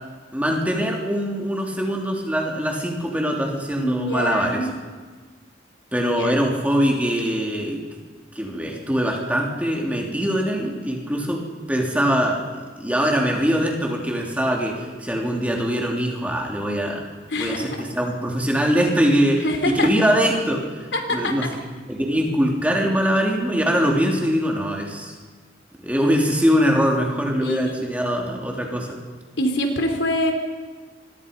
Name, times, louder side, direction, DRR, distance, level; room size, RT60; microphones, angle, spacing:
voice 1, 0.3-4.6 5.9-7.8 8.3-11.4 11.7-12.5 12.8-17.1 17.3-21.4 21.9-25.2 25.8-29.0, equal, 10° right, 0 dB, 3.5 m, -22 dB
voice 2, 3.8-4.7 6.0-6.3 17.3-17.8 19.4-19.9 20.9-21.4 27.4-27.9 29.4-30.3, left 1 dB, 75° left, 4 dB, 3.9 m, -25 dB
26.5 x 23.0 x 5.5 m, 1.4 s
head